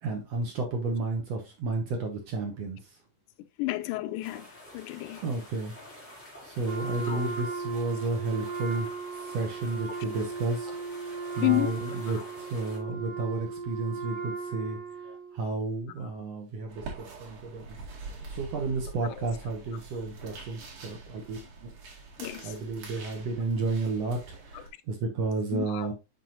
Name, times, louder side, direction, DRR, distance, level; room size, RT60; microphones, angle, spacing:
voice 1, 0.0-2.9 5.2-5.7 6.4-10.7 11.0-14.8 15.3-17.8 18.3-21.7 22.4-25.9, right 3 dB, 65° right, 1.9 m, -32 dB
voice 2, 3.6-4.5 4.7-5.2 7.1-7.3 11.4-11.7 12.1-12.3 15.1-15.2 19.0-19.3 22.2-22.5 24.5-24.6 25.5-25.9, left 20 dB, 85° left, 2.1 m, -31 dB
sound 1, 4.2-12.8, left 1 dB, 5° left, 2.5 m, -49 dB
Wind instrument woodwind instrument, 6.6-15.5, right 4 dB, 40° right, 1.5 m, -37 dB
sound 2, 16.7-24.7, right 3 dB, 85° right, 3.8 m, -44 dB
7.7 x 5.4 x 2.7 m
omnidirectional pair, 3.6 m